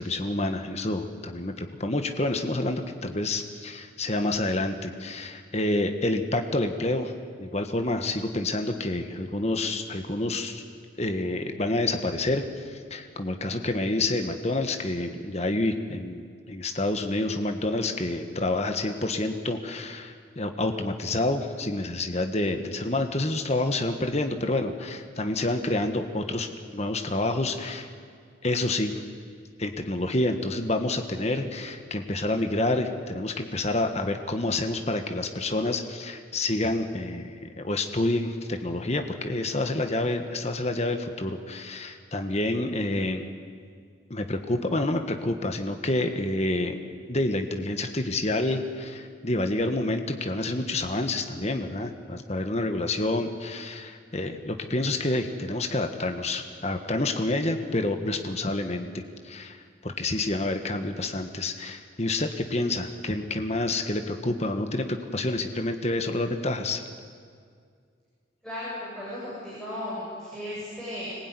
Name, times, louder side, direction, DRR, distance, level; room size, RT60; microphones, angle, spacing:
voice 1, 0.0-7.1 7.4-10.6 11.0-26.5 26.7-27.9 28.4-29.0 29.6-43.3 44.1-46.8 47.1-66.8, left 2 dB, 35° left, 6 dB, 1.5 m, -28 dB
voice 2, 68.4-71.2, left 1 dB, 5° left, -9 dB, 7.8 m, -35 dB
25.0 x 20.5 x 9.8 m, 2.1 s
head